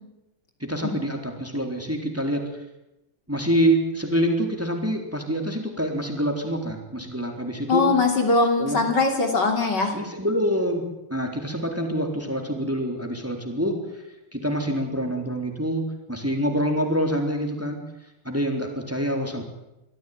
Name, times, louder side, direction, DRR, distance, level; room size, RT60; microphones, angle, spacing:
voice 1, 0.6-2.5 3.3-7.9 8.6-8.8 9.9-10.8 11.1-14.0 14.3-17.8 18.2-19.4, equal, 5° right, 3 dB, 3.8 m, -26 dB
voice 2, 7.7-10.0, left 3 dB, 55° left, 4 dB, 3.7 m, -21 dB
24.5 x 15.5 x 9.6 m, 0.93 s
omnidirectional pair, 2.3 m